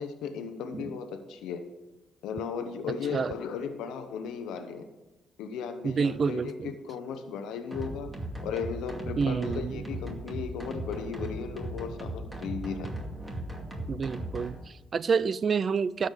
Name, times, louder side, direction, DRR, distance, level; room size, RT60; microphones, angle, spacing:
voice 1, 0.0-1.6 2.2-4.9 5.4-8.1 8.4-12.9, left 6 dB, 90° left, 6 dB, 0.9 m, -36 dB
voice 2, 5.8-6.7 9.2-9.9 13.9-16.1, right 5 dB, 45° right, 18 dB, 0.4 m, -28 dB
sound 1, 7.7-14.5, right 1 dB, 15° right, 2.3 m, -37 dB
13.0 x 5.2 x 8.2 m, 1.1 s
cardioid pair, 90°, 0 cm